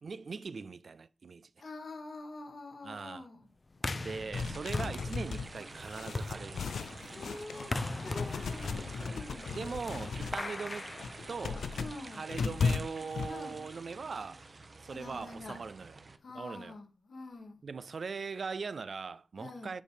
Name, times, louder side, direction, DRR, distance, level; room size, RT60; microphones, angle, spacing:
voice 1, 0.0-1.5 2.8-3.2 3.9-6.7 9.5-10.9 11.3-11.7 12.2-14.4 14.8-16.0 16.3-16.8 17.6-19.8, right 5 dB, 65° right, 0.3 m, -40 dB
voice 2, 1.6-3.5 7.0-9.6 11.7-12.3 13.2-14.3 14.9-15.6 16.2-17.6 19.4-19.8, left 2 dB, 70° left, 1.7 m, -47 dB
sound 1, 3.7-11.9, left 2 dB, 45° left, 0.6 m, -40 dB
sound 2, 4.3-7.7 8.0-10.4 10.9-13.3, left 5 dB, 90° left, 0.4 m, -36 dB
sound 3, 4.3-16.2, right 3 dB, 50° right, 0.9 m, -49 dB
8.6 x 3.2 x 4.9 m
cardioid pair, 55°, 0 cm